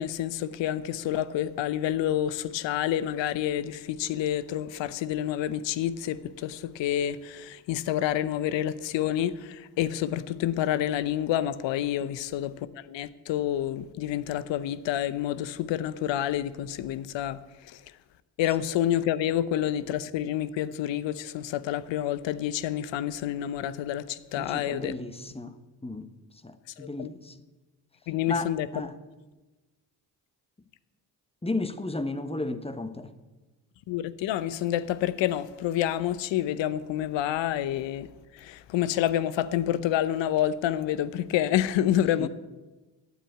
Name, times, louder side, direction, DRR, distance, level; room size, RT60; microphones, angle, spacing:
voice 1, 0.0-17.4 17.7-17.8 18.4-25.0 26.8-27.1 28.1-28.7 33.9-38.1 38.3-42.3, left 11 dB, 70° left, 0.8 m, -28 dB
voice 2, 24.4-25.6 25.8-26.1 26.4-27.3 28.3-29.0 31.4-33.1 42.2-42.3, left 2 dB, 15° left, 1.2 m, -34 dB
9.4 x 8.2 x 9.1 m
hypercardioid pair, 50°, 46 cm